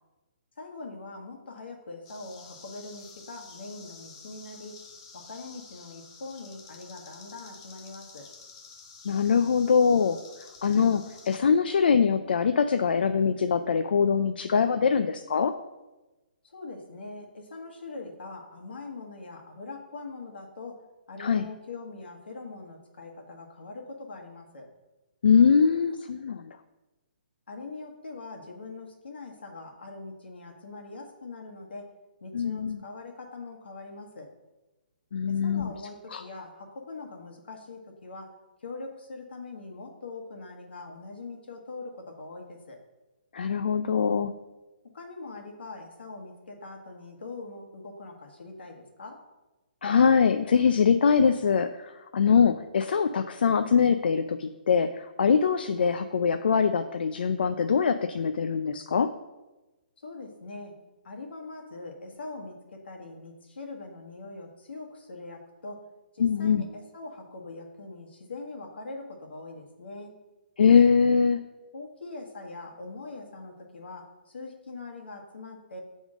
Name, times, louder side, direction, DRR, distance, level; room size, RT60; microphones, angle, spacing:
voice 1, 0.6-4.8 5.1-8.3 16.4-20.8 21.1-24.7 27.5-31.9 32.2-34.3 35.3-38.3 38.6-42.8 44.9-49.2 60.0-60.7 61.0-65.9 66.1-70.1 71.7-75.8, left 3 dB, 85° left, 1 dB, 1.4 m, -42 dB
sound 1, 2.0-11.4, left 5 dB, 25° left, 0.6 m, -50 dB
voice 2, 9.0-10.2 10.6-15.5 21.2-21.4 25.2-26.6 32.3-32.8 35.1-35.7 36.1-36.2 43.3-44.3 49.8-59.1 66.2-66.7 70.6-71.4, left 6 dB, 65° left, 8 dB, 0.4 m, -23 dB
7.4 x 3.6 x 4.9 m, 1.1 s
hypercardioid pair, 170°, 6 cm